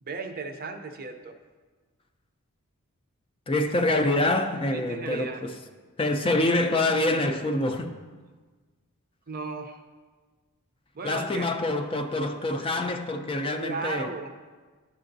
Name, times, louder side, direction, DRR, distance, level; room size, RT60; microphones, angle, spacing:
voice 1, 0.0-1.4 4.7-5.5 9.3-9.8 10.9-11.5 13.6-14.4, right 4 dB, 40° right, 0.5 m, -35 dB
voice 2, 3.5-5.5 6.0-8.0 11.0-14.1, left 2 dB, 25° left, 0.4 m, -26 dB
11.0 x 6.8 x 2.6 m
head